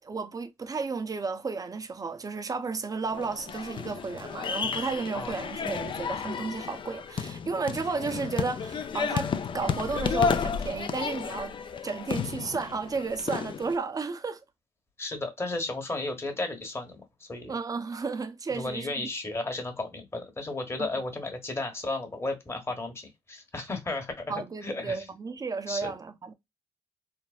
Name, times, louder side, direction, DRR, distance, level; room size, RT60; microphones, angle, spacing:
voice 1, 0.0-11.5 11.8-14.4 17.5-19.1 20.8-20.9 24.3-26.3, right 4 dB, 30° right, 0.6 m, -33 dB
sound 1, 3.1-13.8, left 6 dB, 40° left, 0.4 m, -32 dB
voice 2, 15.0-17.5 18.5-24.3 24.6-25.0 25.7-25.9, left 2 dB, 20° left, 1.1 m, -34 dB
3.3 x 2.1 x 2.3 m
supercardioid pair, 65°, 12 cm